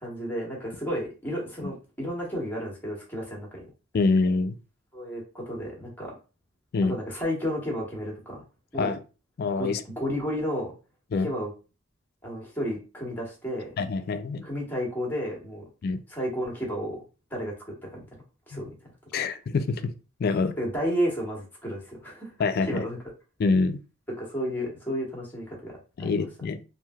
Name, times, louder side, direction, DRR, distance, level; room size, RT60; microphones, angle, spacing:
voice 1, 0.0-3.7 4.9-6.2 6.9-8.4 8.7-8.9 9.6-9.7 10.0-10.7 11.2-11.5 12.2-13.7 14.4-15.6 16.1-17.0 17.3-18.0 18.5-18.7 19.1-19.2 20.6-22.3 22.7-23.0 24.2-25.7 26.0-26.2, equal, 10° left, -1 dB, 1.0 m, -32 dB
voice 2, 3.9-4.6 6.7-7.0 8.8-9.0 9.4-9.8 11.1-11.3 13.8-14.4 15.8-16.0 18.5-18.7 19.1-19.9 20.2-20.5 22.4-22.8 23.4-23.8 26.0-26.6, left 4 dB, 45° left, 10 dB, 0.3 m, -25 dB
3.2 x 2.6 x 2.2 m, 0.33 s
head